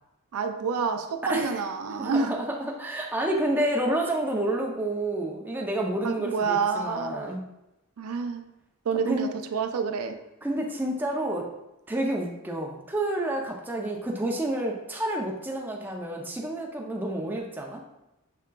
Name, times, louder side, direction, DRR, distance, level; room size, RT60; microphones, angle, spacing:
voice 1, 0.3-2.4 6.0-7.2 8.0-8.5 8.9-10.2, right 5 dB, 90° right, 7 dB, 0.4 m, -28 dB
voice 2, 1.2-1.6 2.0-7.4 9.1-9.3 10.4-11.5 11.9-17.8, right 1 dB, 10° right, 0 dB, 0.5 m, -29 dB
5.5 x 3.6 x 2.3 m, 0.91 s
head